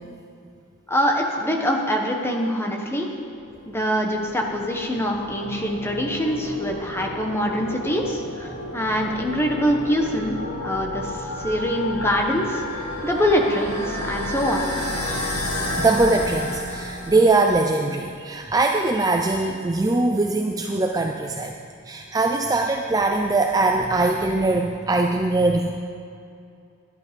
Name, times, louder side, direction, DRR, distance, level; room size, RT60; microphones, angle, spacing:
voice 1, 0.9-3.1 3.7-12.6 13.0-14.7, equal, 10° left, 1 dB, 1.1 m, -24 dB
sound 1, 3.4-17.6, left 1 dB, 80° left, 2.1 m, -31 dB
voice 2, 15.8-21.5 21.9-25.8, right 2 dB, 15° right, 2 dB, 0.4 m, -21 dB
12.0 x 10.5 x 5.2 m, 2.4 s
head